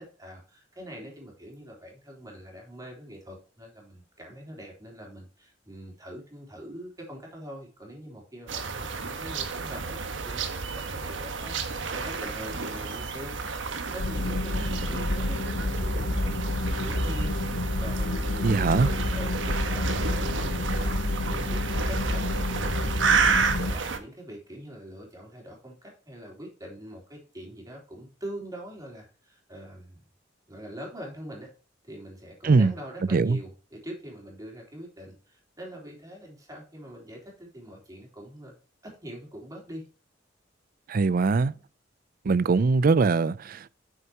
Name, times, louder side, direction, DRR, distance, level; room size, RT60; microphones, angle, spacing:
voice 1, 0.0-17.4 17.8-22.9 23.3-30.0 30.5-31.5 31.8-38.5 38.8-39.9, equal, 20° right, 3.4 m, -43 dB
sound 1, 8.5-24.0, right 5 dB, 80° right, 1.1 m, -31 dB
sound 2, 14.0-23.7, left 2 dB, 80° left, 0.9 m, -29 dB
voice 2, 18.4-18.9 32.4-32.7 33.1-33.4 40.9-41.5 42.3-43.7, right 4 dB, 50° right, 0.4 m, -22 dB
8.9 x 6.6 x 2.9 m
head